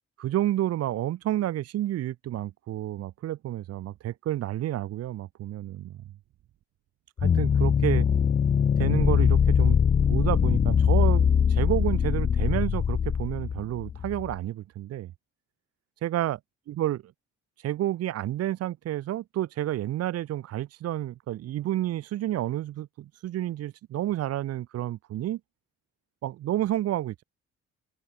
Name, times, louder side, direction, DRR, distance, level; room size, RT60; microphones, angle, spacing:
voice 1, 0.2-6.0 7.2-8.1 8.8-9.8 10.1-15.1 16.0-16.4 16.7-17.0 17.6-25.4 26.2-27.2, right 13 dB, 55° right, 0.6 m, -30 dB
sound 1, 7.2-14.3, left 7 dB, 25° left, 0.4 m, -22 dB
cardioid pair, 105°, 29 cm